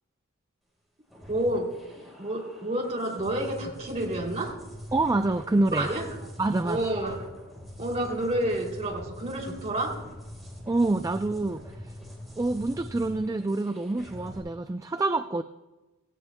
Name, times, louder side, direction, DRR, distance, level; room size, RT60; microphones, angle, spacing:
sound 1, 1.1-14.4, equal, ahead, 3.9 m, -43 dB
voice 1, 1.3-4.6 5.8-6.0 6.6-7.3 7.8-10.0, right 1 dB, 35° right, 0 dB, 2.8 m, -29 dB
voice 2, 4.9-5.9 6.4-6.8 10.7-11.9 12.4-15.4, right 2 dB, 15° right, 8 dB, 0.3 m, -26 dB
18.0 x 16.5 x 2.2 m, 1.1 s
head